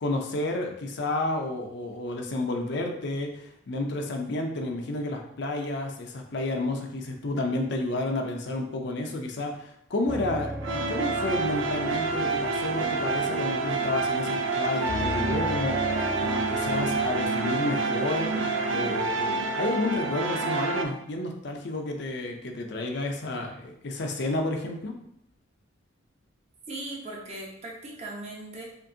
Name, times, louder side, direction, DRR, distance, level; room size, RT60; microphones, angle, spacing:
voice 1, 0.0-15.8 16.2-18.4 18.7-25.0, left 2 dB, 60° left, 3 dB, 0.6 m, -31 dB
sound 1, 10.1-14.6 14.9-17.3, left 1 dB, 5° right, 0.5 m, -37 dB
Foreboding Interlude, 10.6-20.8, right 3 dB, 75° right, 0.5 m, -28 dB
voice 2, 26.7-28.6, right 2 dB, 35° right, -3 dB, 0.9 m, -38 dB
5.1 x 2.6 x 2.7 m, 0.74 s
head